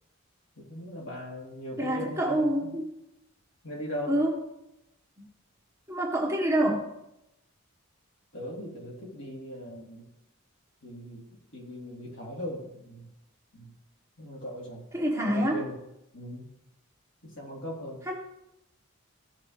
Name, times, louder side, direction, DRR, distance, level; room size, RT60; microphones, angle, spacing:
voice 1, 0.6-2.7 3.6-4.2 8.3-10.1 10.8-11.2 11.5-13.1 13.5-13.7 14.2-14.8 15.2-15.8 16.1-16.5 17.2-18.0, equal, 60° left, -3 dB, 2.8 m, -39 dB
voice 2, 1.8-2.9 4.1-4.3 5.9-6.9 14.9-15.6 18.1-18.2, right 1 dB, 15° right, -3 dB, 1.4 m, -26 dB
15.5 x 5.6 x 3.3 m, 0.86 s
head